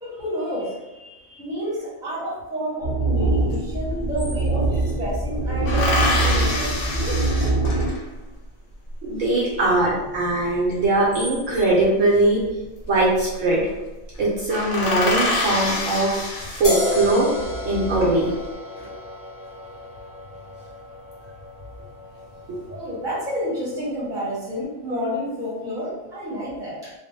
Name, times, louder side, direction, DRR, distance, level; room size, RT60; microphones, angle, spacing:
voice 1, 0.0-7.2 9.2-9.6 18.0-18.1 18.8-19.0 22.7-26.9, equal, 5° right, -8 dB, 0.7 m, -30 dB
sound 1, 2.8-7.9, right 2 dB, 40° right, 0.4 m, -23 dB
sound 2, 3.5-3.6 3.8-4.9 5.7-8.2 10.8-11.8 13.0-13.4 13.7-13.8 14.1-14.2 14.5-17.1 17.6-18.3, left 2 dB, 70° left, 0.8 m, -27 dB
voice 2, 9.0-12.4 12.9-13.6 14.2-17.3 17.7-18.3, right 2 dB, 70° right, -4 dB, 0.9 m, -21 dB
sound 3, 16.6-23.9, left 1 dB, 35° left, 0.6 m, -33 dB
2.4 x 2.0 x 2.6 m, 1.1 s
omnidirectional pair, 1.5 m